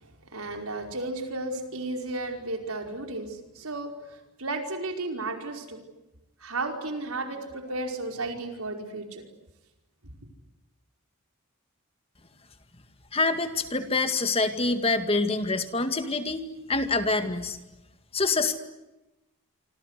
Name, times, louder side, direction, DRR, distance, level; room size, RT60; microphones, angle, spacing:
voice 1, 0.0-5.8 6.4-9.2, right 2 dB, 75° right, 4 dB, 5.0 m, -34 dB
voice 2, 13.1-16.4 16.7-17.6 18.1-18.6, left 3 dB, 25° left, 8 dB, 2.0 m, -26 dB
27.0 x 26.0 x 8.3 m, 0.99 s
head